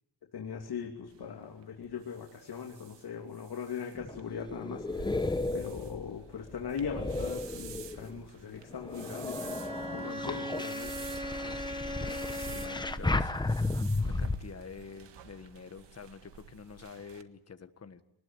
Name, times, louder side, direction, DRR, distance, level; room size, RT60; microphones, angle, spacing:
voice 1, 0.3-9.6 9.9-11.0, left 6 dB, 60° left, 1 dB, 2.9 m, -40 dB
sound 1, 1.1-17.2, right 8 dB, 75° right, 1.8 m, -52 dB
sound 2, 3.9-8.2 8.7-14.4, left 2 dB, 10° left, 1.0 m, -34 dB
Bowed string instrument, 9.4-13.2, equal, 15° right, 1.8 m, -39 dB
voice 2, 12.2-13.3 14.2-18.0, left 5 dB, 35° left, 9 dB, 1.5 m, -48 dB
25.5 x 20.0 x 8.9 m, 0.78 s
wide cardioid pair, 145°, 43 cm